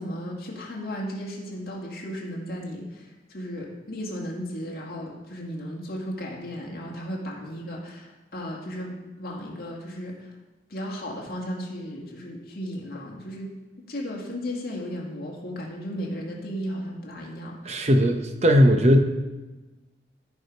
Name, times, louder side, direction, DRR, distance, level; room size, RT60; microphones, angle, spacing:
voice 1, 0.0-10.3 10.7-13.5 13.9-17.8, equal, 55° left, -2 dB, 2.1 m, -35 dB
voice 2, 17.6-19.0, equal, 35° right, 5 dB, 0.8 m, -18 dB
14.0 x 4.9 x 5.4 m, 1.1 s
head